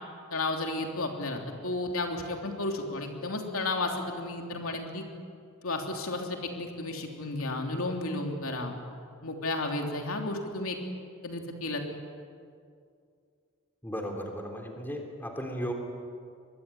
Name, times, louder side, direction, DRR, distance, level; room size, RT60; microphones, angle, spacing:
voice 1, 0.3-5.0 5.6-8.7 9.2-10.8 11.2-11.8, left 2 dB, 75° left, 3 dB, 3.1 m, -33 dB
voice 2, 13.8-15.7, equal, 10° left, 2 dB, 3.4 m, -35 dB
24.5 x 21.5 x 9.9 m, 2.3 s
head